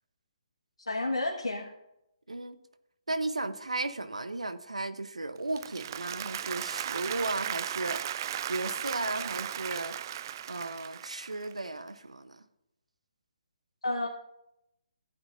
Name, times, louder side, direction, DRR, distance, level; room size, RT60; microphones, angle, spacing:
voice 1, 0.9-1.7 13.8-14.1, left 2 dB, 75° left, -1 dB, 1.5 m, -30 dB
voice 2, 3.1-9.9 10.5-12.4, right 2 dB, 80° right, 11 dB, 0.9 m, -35 dB
Applause, 5.4-11.6, right 10 dB, 35° right, 0.3 m, -36 dB
15.5 x 9.0 x 2.6 m, 0.84 s
figure-of-eight pair, 140°, 3 cm